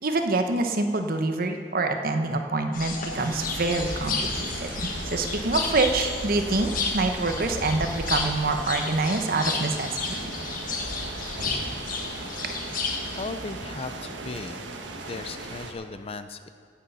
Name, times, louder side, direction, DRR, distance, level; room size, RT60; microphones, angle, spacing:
voice 1, 0.0-4.7 5.1-10.3 10.7-10.8, right 3 dB, 50° right, 5 dB, 1.0 m, -26 dB
sound 1, 2.7-13.3, left 4 dB, 45° left, 1.3 m, -32 dB
sound 2, 3.1-15.7, right 2 dB, 75° right, 1.3 m, -38 dB
voice 2, 13.2-14.7 15.1-16.5, left 3 dB, 30° left, 10 dB, 0.5 m, -36 dB
15.5 x 8.3 x 5.6 m, 2.2 s
head